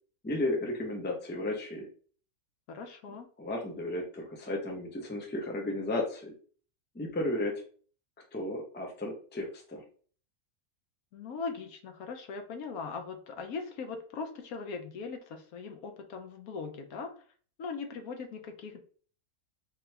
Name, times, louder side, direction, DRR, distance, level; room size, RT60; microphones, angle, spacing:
voice 1, 0.2-1.9 3.4-6.3 6.9-7.6 8.3-9.8, left 1 dB, 10° left, 1 dB, 0.5 m, -34 dB
voice 2, 2.7-3.3 11.1-17.1 17.6-18.8, left 4 dB, 80° left, 6 dB, 1.2 m, -40 dB
3.7 x 3.0 x 3.3 m, 0.44 s
omnidirectional pair, 1.5 m